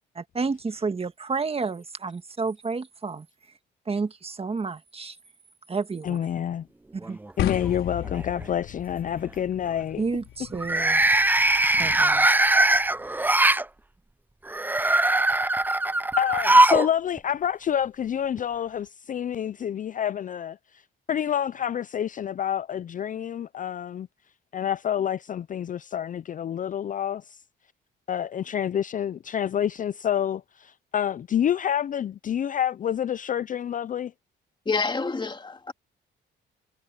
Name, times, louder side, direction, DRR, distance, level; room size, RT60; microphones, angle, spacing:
voice 1, 0.1-3.3 3.8-5.2 5.7-6.2 6.9-7.2 10.0-11.0 11.8-12.3, right 4 dB, 30° right, 1.6 m, -30 dB
voice 2, 6.0-6.7 7.4-10.0 16.2-20.8 21.1-24.1 24.5-27.4 28.1-34.1, left 9 dB, 40° left, 0.5 m, -28 dB
sound 1, 7.0-7.7 8.1-8.4 10.5-13.6 14.5-16.9 17.2-17.3 18.4-18.5, right 2 dB, 10° right, 0.6 m, -21 dB
sound 2, 7.4-13.5, left 13 dB, 85° left, 4.2 m, -37 dB
voice 3, 34.7-35.7, left 4 dB, 25° left, 2.4 m, -28 dB
cardioid pair, 90°, 20 cm